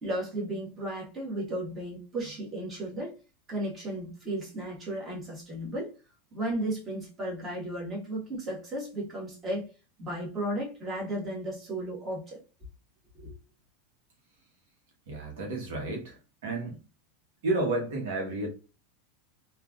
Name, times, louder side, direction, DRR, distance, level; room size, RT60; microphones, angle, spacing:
voice 1, 0.0-3.1 3.5-5.9 6.3-9.7 10.0-12.4 13.2-13.3, right 1 dB, 20° right, 1.4 m, -34 dB
voice 2, 15.1-16.8 17.4-18.5, right 2 dB, 75° right, 1.1 m, -31 dB
3.1 x 2.4 x 2.4 m
supercardioid pair, 145°, 0 cm